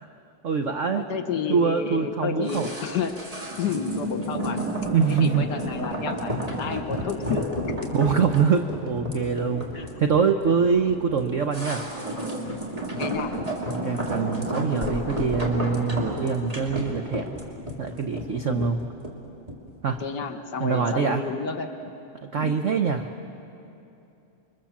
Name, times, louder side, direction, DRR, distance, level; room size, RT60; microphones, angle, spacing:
voice 1, 0.4-1.1 1.5-2.7 4.9-5.4 7.9-9.7 10.0-11.8 13.7-17.3 17.8-18.8 19.8-20.0 20.6-21.2 22.3-23.1, right 6 dB, 55° right, 6 dB, 0.9 m, -24 dB
voice 2, 1.0-3.2 3.6-4.6 5.1-7.5 9.7-9.9 13.0-13.3 18.4-18.7 20.0-21.7 22.4-22.6, left 5 dB, 55° left, 8 dB, 1.7 m, -30 dB
sound 1, 2.4-19.7 20.0-20.1, equal, 15° right, 2.9 m, -31 dB
28.0 x 23.0 x 7.4 m, 2.8 s
omnidirectional pair, 2.3 m